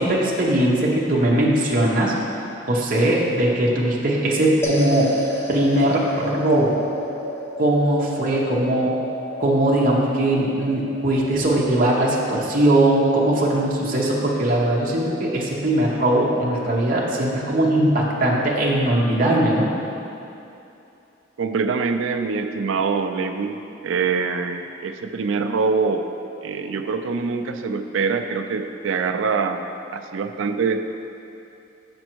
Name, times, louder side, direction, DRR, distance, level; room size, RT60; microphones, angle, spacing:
voice 1, 0.0-2.1 2.7-5.1 5.5-6.8 7.6-8.9 9.4-19.7, right 1 dB, 45° right, -4 dB, 0.9 m, -20 dB
sound 1, 4.6-15.1, left 1 dB, 15° left, 0.6 m, -33 dB
voice 2, 21.4-26.0 26.4-29.7 29.9-30.9, right 5 dB, 90° right, 7 dB, 0.4 m, -24 dB
6.2 x 5.2 x 4.5 m, 2.8 s
head